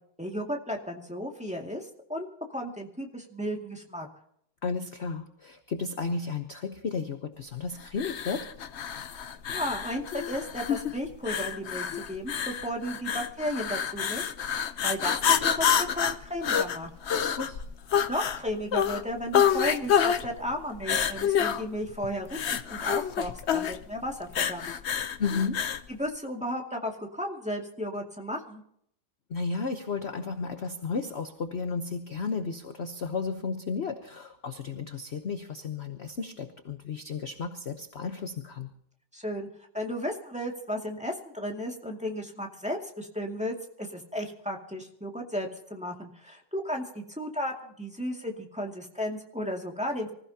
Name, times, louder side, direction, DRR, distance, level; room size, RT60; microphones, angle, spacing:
voice 1, 0.2-4.1 9.5-14.3 14.8-16.9 18.1-24.7 25.9-28.6 39.1-39.5 39.7-50.1, equal, 5° right, 1 dB, 2.0 m, -34 dB
voice 2, 4.6-8.5 17.4-17.6 25.2-25.7 29.3-38.7, left 4 dB, 45° left, 7 dB, 0.9 m, -33 dB
sound 1, 7.9-25.9, left 8 dB, 75° left, 0.6 m, -28 dB
25.0 x 15.5 x 2.8 m, 0.69 s
omnidirectional pair, 2.2 m